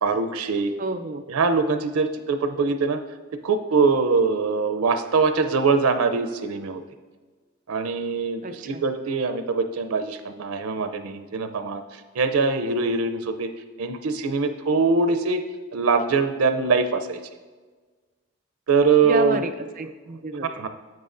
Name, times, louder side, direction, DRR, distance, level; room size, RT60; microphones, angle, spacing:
voice 1, 0.0-0.7 1.3-3.0 3.4-6.8 7.7-11.8 12.1-13.5 13.8-15.4 15.7-17.2 18.7-19.5 20.6-20.7, right 4 dB, 90° right, 9 dB, 0.6 m, -23 dB
voice 2, 0.8-1.2 8.4-8.8 19.0-20.7, right 2 dB, 40° right, 7 dB, 0.4 m, -30 dB
9.6 x 7.6 x 2.6 m, 1.4 s
head